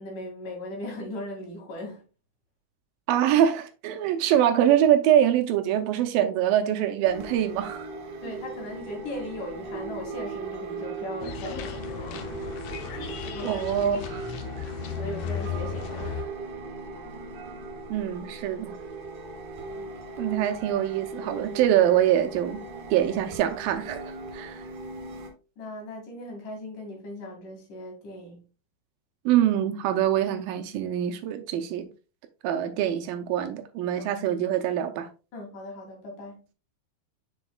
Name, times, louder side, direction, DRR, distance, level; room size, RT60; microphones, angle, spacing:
voice 1, 0.0-2.0 8.2-12.5 12.9-13.6 14.9-16.3 19.7-19.9 20.5-20.6 25.6-28.4 34.0-34.1 35.3-36.4, left 1 dB, 60° left, 3.7 m, -39 dB
voice 2, 3.1-7.9 13.4-14.3 17.9-18.8 20.2-22.6 22.9-24.0 24.3-24.6 29.3-31.9 32.4-35.1, right 11 dB, 80° right, 2.4 m, -24 dB
sound 1, 7.0-25.3, right 3 dB, 60° right, 2.9 m, -38 dB
sound 2, 11.2-16.2, left 8 dB, 80° left, 1.5 m, -35 dB
7.2 x 6.8 x 2.3 m
omnidirectional pair, 4.2 m